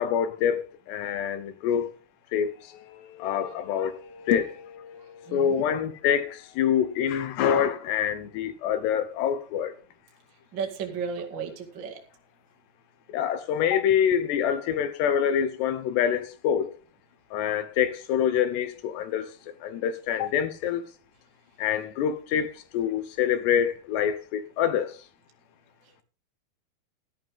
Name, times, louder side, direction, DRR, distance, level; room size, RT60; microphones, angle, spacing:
voice 1, 0.0-1.9 2.3-9.7 13.1-16.7 17.3-19.3 19.6-20.8 21.6-24.9, left 8 dB, 80° left, 3.2 m, -26 dB
voice 2, 10.5-12.0, right 6 dB, 40° right, 1.9 m, -34 dB
14.0 x 12.0 x 3.6 m
omnidirectional pair, 4.9 m